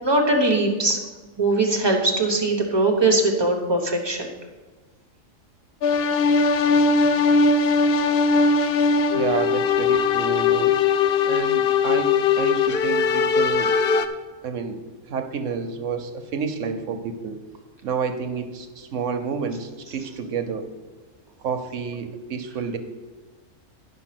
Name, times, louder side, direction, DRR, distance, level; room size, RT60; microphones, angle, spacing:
voice 1, 0.0-1.0 1.4-4.3, right 2 dB, 20° right, 1 dB, 1.1 m, -21 dB
sound 1, 5.8-14.1, left 4 dB, 60° left, 0.7 m, -20 dB
voice 2, 9.1-10.7 11.2-13.7 14.4-17.4 17.8-20.7 21.4-22.8, right 6 dB, 70° right, 7 dB, 1.1 m, -29 dB
10.0 x 5.8 x 5.9 m, 1.3 s
omnidirectional pair, 1.4 m